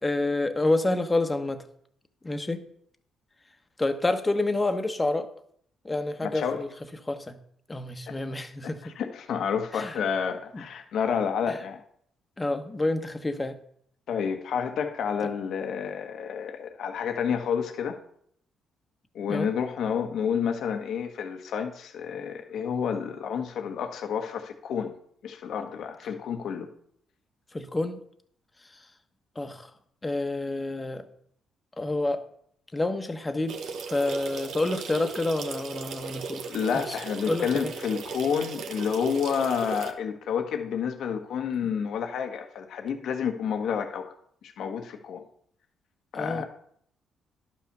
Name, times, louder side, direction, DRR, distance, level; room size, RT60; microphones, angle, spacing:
voice 1, 0.0-1.7 2.2-2.6 3.8-5.3 5.8-6.7 7.0-7.4 7.7-8.9 9.7-10.0 10.5-10.6 11.5-11.6 12.4-13.6 19.3-19.5 27.5-28.0 29.4-29.7 30.0-31.0 31.8-32.2 32.7-33.6 33.9-37.0 37.3-37.7 46.1-46.4, left 2 dB, 20° left, 8 dB, 1.2 m, -28 dB
voice 2, 6.2-6.6 8.1-8.2 8.6-11.8 14.1-18.0 19.1-24.9 25.2-26.7 36.5-44.1 44.4-45.2 46.1-46.4, left 7 dB, 70° left, 6 dB, 1.3 m, -29 dB
sound 1, 33.5-39.9, right 5 dB, 75° right, 1.2 m, -37 dB
11.5 x 5.8 x 6.6 m, 0.66 s
cardioid pair, 90°, 0 cm